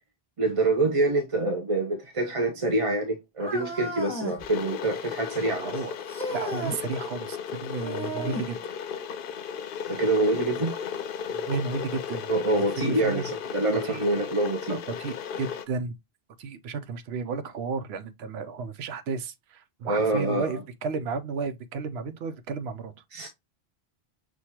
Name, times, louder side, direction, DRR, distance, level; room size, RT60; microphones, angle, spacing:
voice 1, 0.4-5.7 9.9-10.8 12.3-14.8 19.8-20.6 23.1-23.3, right 2 dB, 40° right, 0.6 m, -26 dB
sound 1, 3.4-4.4 6.1-6.8 7.8-8.5 10.6-10.7 11.5-11.6 12.6-12.7, right 1 dB, 5° left, 1.1 m, -34 dB
Water / Boiling, 4.4-15.7, left 7 dB, 65° left, 0.7 m, -35 dB
voice 2, 5.5-5.9 6.3-8.6 11.3-13.2 13.8-14.3 14.7-16.0 16.4-22.9, right 4 dB, 80° right, 0.9 m, -33 dB
6.2 x 2.3 x 2.8 m
omnidirectional pair, 1.1 m